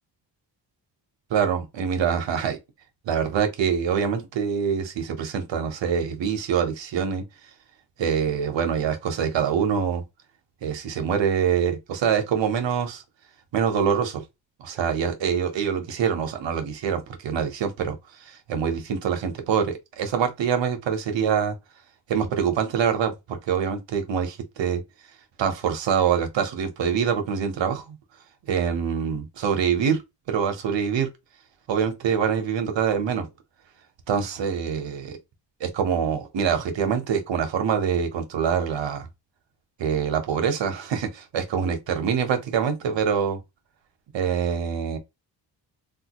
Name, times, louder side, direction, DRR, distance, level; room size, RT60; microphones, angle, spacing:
voice 1, 1.3-2.6 3.0-7.2 8.0-10.0 10.6-13.0 13.5-14.2 14.6-18.0 18.3-21.6 22.1-24.8 25.4-28.0 28.5-30.0 30.3-31.1 31.7-33.3 34.1-35.2 35.6-39.1 39.8-43.4 44.1-45.0, right 7 dB, 85° right, 1.1 m, -25 dB
3.5 x 2.4 x 2.9 m
cardioid pair, 95°, 43 cm